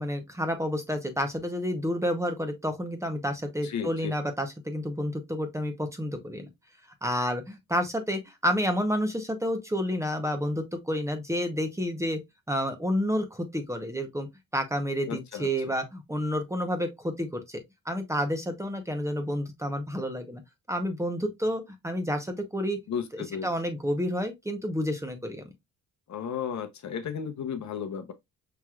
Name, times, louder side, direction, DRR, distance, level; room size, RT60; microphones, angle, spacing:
voice 1, 0.0-6.5 7.0-12.2 12.5-14.3 14.5-17.6 17.9-20.4 20.7-22.8 23.1-25.4, equal, 10° right, 0.8 m, -30 dB
voice 2, 3.6-4.1 15.1-15.7 22.9-23.5 26.1-28.1, left 7 dB, 55° left, 0.8 m, -34 dB
5.8 x 3.1 x 2.3 m
cardioid pair, 125°, 33 cm